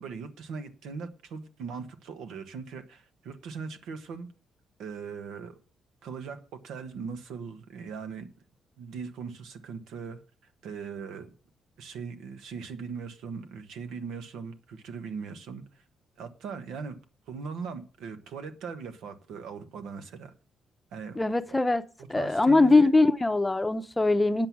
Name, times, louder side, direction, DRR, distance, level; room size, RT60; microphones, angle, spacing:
voice 1, 0.0-4.3 4.8-5.5 6.0-6.4 6.6-8.3 8.8-11.3 11.8-15.8 16.2-17.0 17.3-20.3 20.9-21.2 21.5-21.6 22.0-22.9, right 5 dB, 85° right, 1.3 m, -39 dB
voice 2, 21.2-21.8 22.1-24.5, left 2 dB, 15° left, 0.7 m, -22 dB
8.9 x 7.7 x 6.0 m
cardioid pair, 90°, 0 cm